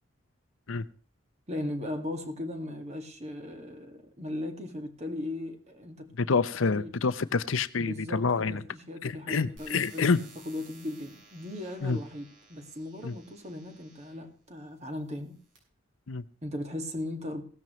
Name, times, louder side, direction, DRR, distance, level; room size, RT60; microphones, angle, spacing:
voice 1, 1.5-6.1 6.6-6.9 7.8-10.2 10.5-15.4 16.4-17.4, left 1 dB, 35° right, 2.0 m, -37 dB
voice 2, 6.2-8.6 9.0-10.2 11.8-12.0 13.0-13.1 16.1-16.2, left 4 dB, 85° left, 0.7 m, -27 dB
sound 1, 9.6-14.3 15.0-15.6, right 3 dB, 70° right, 6.7 m, -56 dB
17.0 x 13.5 x 3.1 m
head